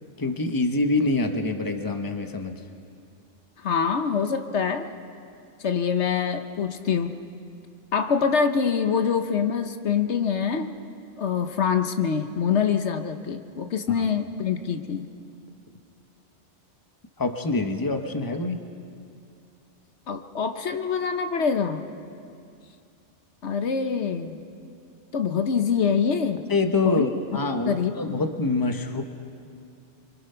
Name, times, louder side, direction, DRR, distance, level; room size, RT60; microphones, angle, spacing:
voice 1, 0.2-2.6 13.9-14.1 17.2-18.6 26.5-29.0, left 3 dB, 20° left, 5 dB, 1.1 m, -25 dB
voice 2, 3.6-4.9 5.6-7.1 7.9-10.7 11.2-15.1 20.1-21.8 23.4-24.4 25.1-26.4 26.8-27.1 27.7-28.2, left 6 dB, 70° left, 7 dB, 1.2 m, -25 dB
25.5 x 24.5 x 5.7 m, 2.4 s
omnidirectional pair, 1.2 m